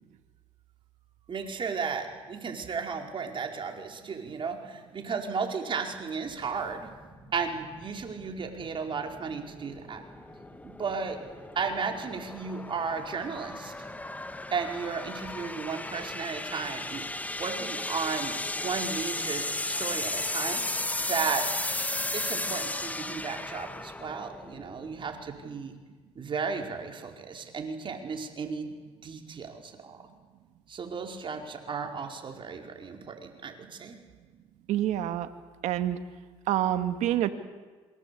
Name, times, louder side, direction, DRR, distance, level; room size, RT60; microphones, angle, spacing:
voice 1, 1.3-6.9 7.3-10.0 10.6-11.2 11.5-13.7 14.5-20.6 21.0-21.4 22.1-25.7 26.1-28.7 29.0-30.0 30.7-34.0, right 5 dB, 45° right, 3 dB, 4.8 m, -34 dB
sound 1, 6.3-25.4, left 2 dB, 10° left, 1.6 m, -35 dB
voice 2, 34.7-35.3 35.6-36.0 36.5-37.3, right 12 dB, 75° right, 9 dB, 2.1 m, -27 dB
27.0 x 24.0 x 8.5 m, 1.4 s
supercardioid pair, 80°, 12 cm